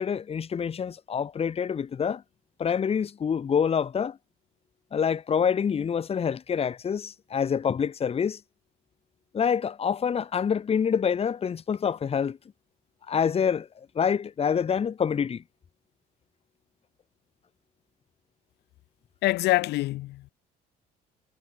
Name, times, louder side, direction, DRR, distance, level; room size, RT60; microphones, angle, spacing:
voice 1, 0.0-2.2 2.6-4.2 4.9-8.4 9.3-12.4 13.1-13.7 13.9-15.4, left 7 dB, 35° left, 1.6 m, -26 dB
voice 2, 19.2-20.3, left 17 dB, 80° left, 2.5 m, -25 dB
cardioid pair, 110°, 17 cm